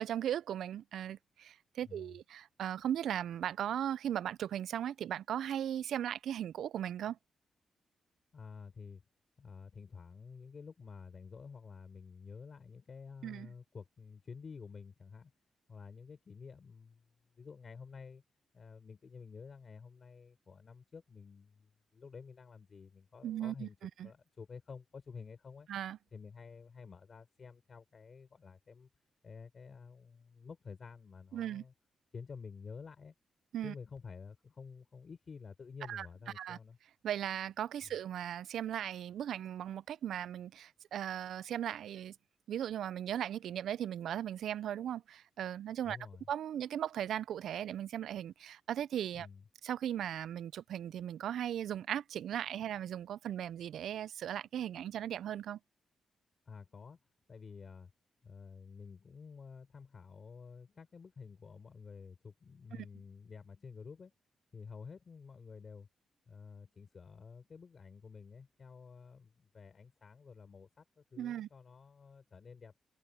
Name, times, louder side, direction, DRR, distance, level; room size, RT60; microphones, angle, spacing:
voice 1, 0.0-7.2 13.2-13.5 23.2-23.7 24.0-24.1 25.7-26.0 31.3-31.6 33.5-33.7 35.9-36.1 36.4-36.6 37.0-42.2 42.5-46.0 46.3-49.3 49.6-55.6 62.7-62.8 71.2-71.5, right 10 dB, 85° right, 0.4 m, -37 dB
voice 2, 1.8-2.2 8.3-9.0 9.4-15.3 15.7-18.2 18.5-23.8 24.0-25.7 26.1-28.9 29.2-31.7 32.1-33.1 33.6-36.8 45.8-46.3 49.1-49.4 52.4-52.7 56.4-57.0 57.3-57.9 58.2-64.1 64.5-65.9 66.3-72.8, left 5 dB, 45° left, 5.6 m, -51 dB
cardioid pair, 95°, 0 cm